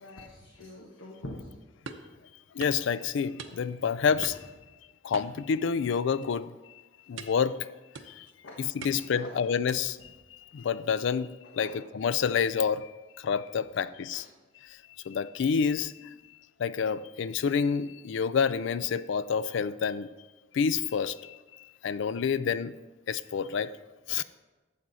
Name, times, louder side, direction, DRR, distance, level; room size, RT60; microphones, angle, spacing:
voice 1, 0.0-1.4 8.4-8.6 9.1-9.4 11.6-11.8 14.1-14.2, left 1 dB, 85° left, 0 dB, 1.3 m, -44 dB
sound 1, 1.9-2.1 2.6-2.8 3.4-3.8 4.2-4.6 5.1-5.9 6.2-6.5 7.2-7.5 7.9-8.3 8.8-9.2 9.7-10.0, right 4 dB, 75° right, 0.8 m, -44 dB
voice 2, 2.5-4.4 5.0-6.5 7.1-7.7 8.1-8.3 8.6-10.0 10.5-12.9 13.2-14.3 15.1-16.1 16.6-20.1 20.5-22.8 23.1-23.7 24.1-24.2, left 6 dB, 65° left, 16 dB, 0.4 m, -28 dB
12.0 x 7.6 x 4.0 m, 1.2 s
head